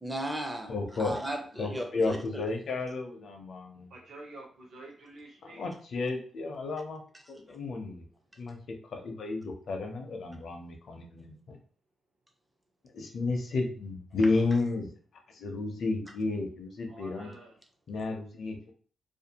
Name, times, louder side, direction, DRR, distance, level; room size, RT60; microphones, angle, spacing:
voice 1, 0.0-2.4, right 1 dB, 10° right, 0.4 m, -36 dB
voice 2, 0.7-1.2 1.6-3.9 5.4-7.0 7.3-8.0 8.4-11.6 12.9-14.9 15.3-17.3 17.9-18.7, left 3 dB, 60° left, 0.5 m, -32 dB
voice 3, 3.9-5.6 16.9-17.5, right 2 dB, 70° right, 0.8 m, -48 dB
2.5 x 2.3 x 2.8 m
wide cardioid pair, 165°, 0 cm